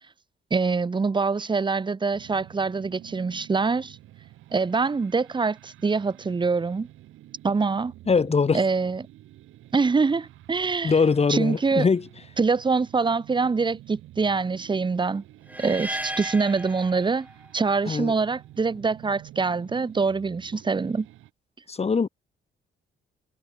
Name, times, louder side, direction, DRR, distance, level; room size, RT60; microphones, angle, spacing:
voice 1, 0.5-4.0 4.5-6.9 7.4-7.9 8.5-9.1 9.7-11.0 11.3-11.9 12.4-15.2 15.6-17.3 17.5-21.1, right 4 dB, 25° right, 0.9 m, -24 dB
sound 1, 2.1-21.3, right 15 dB, 85° right, 7.0 m, -49 dB
voice 2, 8.1-8.6 10.8-12.0 17.9-18.1 21.7-22.1, left 5 dB, 30° left, 1.8 m, -22 dB
sound 2, 15.5-17.6, right 1 dB, 10° right, 5.2 m, -35 dB
cardioid pair, 90°, 20 cm